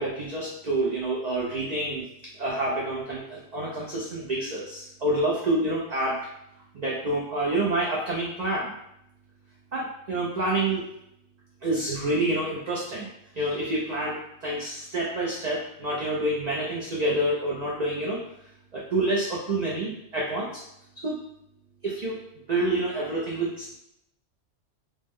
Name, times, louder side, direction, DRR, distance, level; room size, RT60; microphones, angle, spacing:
voice 1, 0.0-2.0 2.4-6.2 6.7-8.7 9.7-10.8 11.6-13.1 13.3-18.3 18.7-20.6 21.0-21.2 21.8-22.2 22.5-23.8, right 1 dB, 50° right, -4 dB, 0.5 m, -28 dB
3.1 x 2.0 x 3.5 m, 0.79 s
omnidirectional pair, 1.3 m